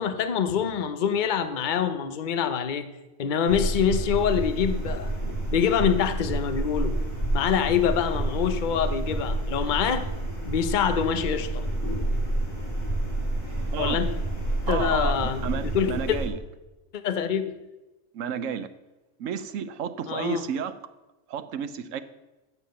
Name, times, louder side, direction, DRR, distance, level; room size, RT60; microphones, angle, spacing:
voice 1, 0.0-2.9 3.2-5.1 5.5-7.0 7.3-10.1 10.4-11.7 13.8-14.1 14.7-16.2 16.9-17.5 20.1-20.5, left 7 dB, 45° left, 10 dB, 0.8 m, -25 dB
sound 1, 3.5-16.3, right 1 dB, 85° left, 3.7 m, -29 dB
voice 2, 14.7-16.3 18.1-18.7 19.2-20.7 21.3-22.0, right 8 dB, 90° right, 12 dB, 1.1 m, -31 dB
9.6 x 7.3 x 6.8 m, 1.1 s
omnidirectional pair, 1.3 m